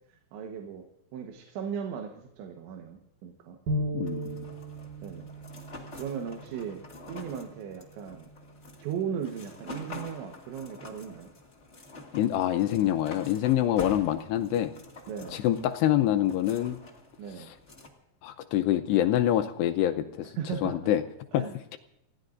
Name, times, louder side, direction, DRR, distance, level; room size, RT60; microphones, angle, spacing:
voice 1, 0.1-0.9 1.1-3.6 5.0-5.3 5.9-6.8 7.1-8.3 8.8-11.3 15.1-15.4 17.2-17.5 20.2-20.8 21.3-21.6, right 7 dB, 85° right, 3 dB, 3.6 m, -37 dB
sound 1, 3.7-9.9, right 1 dB, 60° right, 2.8 m, -38 dB
voice 2, 3.9-4.5 12.1-14.7 15.3-16.8 17.4-17.5 18.2-20.3 20.6-21.0 21.3-21.4, left 12 dB, 80° left, 8 dB, 2.6 m, -26 dB
sound 2, 4.0-17.9, left 2 dB, 45° left, 0.8 m, -47 dB
29.5 x 16.5 x 2.6 m, 0.86 s
omnidirectional pair, 5.2 m